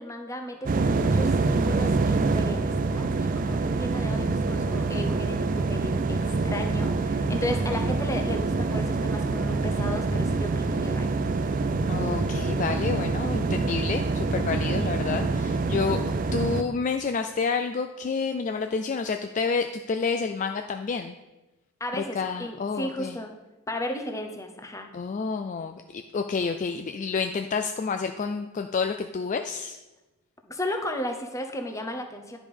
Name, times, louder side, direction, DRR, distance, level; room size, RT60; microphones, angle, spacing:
voice 1, 0.0-11.2 21.8-23.3 23.7-24.9 30.4-32.4, left 1 dB, 15° left, 4 dB, 0.8 m, -34 dB
sound 1, 0.7-16.6, right 3 dB, 40° right, 0.4 m, -26 dB
voice 2, 11.9-21.1 22.2-23.2 24.9-29.8, left 5 dB, 35° left, 6 dB, 0.3 m, -29 dB
10.5 x 5.0 x 5.4 m, 1.1 s
head